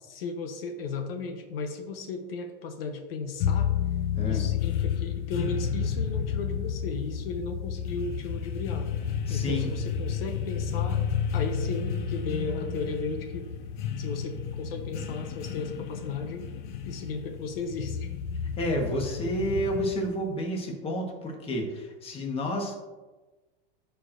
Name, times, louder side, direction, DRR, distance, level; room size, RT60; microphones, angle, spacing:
voice 1, 0.0-3.7 4.2-8.9 9.3-11.1 11.3-13.5 14.0-16.5 16.8-18.1, left 4 dB, 80° left, 6 dB, 0.9 m, -35 dB
sound 1, 3.4-20.2, left 7 dB, 55° left, 0.7 m, -31 dB
voice 2, 4.2-4.5 9.3-9.7 18.6-22.8, equal, 20° left, 1 dB, 1.3 m, -30 dB
13.0 x 4.6 x 2.5 m, 1.2 s
supercardioid pair, 145°, 29 cm